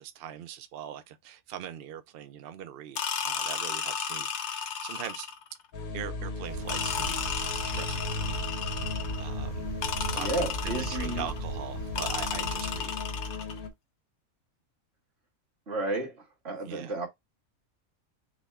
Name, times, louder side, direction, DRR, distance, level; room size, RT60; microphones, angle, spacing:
voice 1, 0.0-5.3 5.9-7.2 7.5-8.5 8.7-9.7 10.0-10.3 10.6-13.0 16.6-16.9, right 10 dB, 70° right, 0.5 m, -42 dB
sound 1, 3.0-5.5 6.7-9.3 9.8-11.4 12.0-13.6, left 7 dB, 60° left, 0.9 m, -34 dB
sound 2, 5.7-13.7, left 3 dB, 85° left, 1.6 m, -37 dB
sound 3, 6.4-12.8, right 3 dB, 90° right, 1.5 m, -38 dB
voice 2, 10.0-11.3 15.7-17.1, right 2 dB, 45° right, 2.1 m, -33 dB
6.2 x 2.2 x 3.4 m
omnidirectional pair, 1.5 m